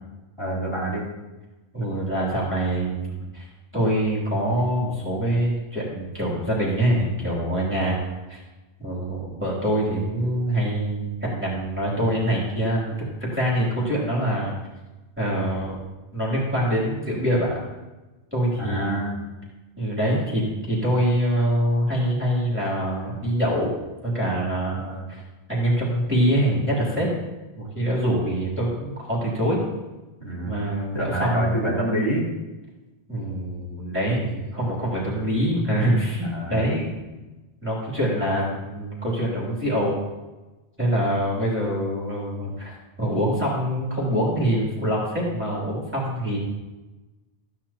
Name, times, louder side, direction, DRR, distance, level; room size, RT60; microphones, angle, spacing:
voice 1, 0.4-1.0 18.6-19.2 24.7-25.1 30.2-30.5 30.9-32.3 36.2-36.6, right 1 dB, 25° left, -8 dB, 3.2 m, -27 dB
voice 2, 1.7-3.5 3.7-8.0 8.3-8.4 8.8-14.5 15.2-15.8 16.1-17.6 18.3-19.0 19.8-23.7 24.0-25.2 25.5-27.1 27.6-29.6 30.4-31.6 33.1-36.9 37.6-39.9 40.8-42.7 43.0-46.4, equal, 10° right, -6 dB, 3.1 m, -24 dB
15.0 x 10.0 x 2.9 m, 1.1 s
omnidirectional pair, 1.2 m